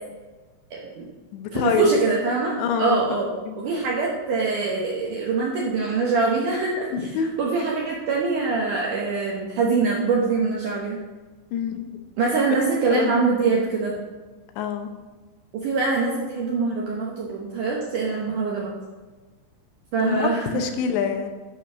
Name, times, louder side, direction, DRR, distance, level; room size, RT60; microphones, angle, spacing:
voice 1, 0.7-1.1 1.5-3.3 3.6-7.1 7.4-11.0 12.2-13.9 15.6-18.7 19.9-20.4, right 4 dB, 70° right, -3 dB, 1.9 m, -24 dB
voice 2, 1.3-1.9 2.6-3.0 3.5-3.6 6.9-7.3 11.5-11.8 12.9-13.2 14.6-14.9 20.0-21.3, left 7 dB, 80° left, 6 dB, 3.0 m, -26 dB
11.0 x 4.6 x 6.1 m, 1.3 s
omnidirectional pair, 5.0 m